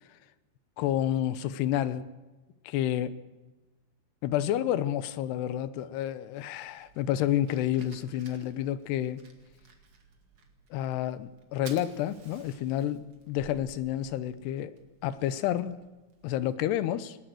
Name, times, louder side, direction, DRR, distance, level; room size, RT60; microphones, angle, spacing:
voice 1, 0.8-2.0 2.6-3.2 4.2-9.2 10.7-14.8 15.0-15.8 16.2-17.2, left 11 dB, 80° left, 15 dB, 2.9 m, -29 dB
Fire, 6.7-16.4, right 5 dB, 40° right, 2.3 m, -55 dB
19.5 x 18.5 x 7.8 m, 1.1 s
omnidirectional pair, 4.8 m